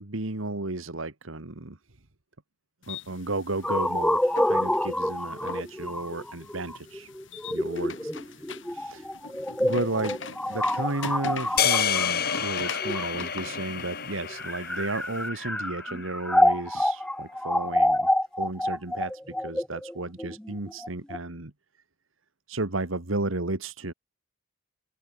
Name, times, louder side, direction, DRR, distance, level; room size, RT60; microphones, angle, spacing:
voice 1, 0.0-1.8 2.9-7.1 7.5-8.1 8.7-9.1 9.6-18.1 18.4-21.5 22.5-23.9, right 2 dB, 85° right, 2.0 m, -33 dB
sound 1, 2.8-15.3, left 4 dB, 65° left, 3.2 m, -42 dB
sound 2, 3.6-13.5 14.2-21.2, left 1 dB, 5° left, 0.4 m, -27 dB
sound 3, 11.6-15.9, left 8 dB, 50° left, 6.4 m, -29 dB
open air
head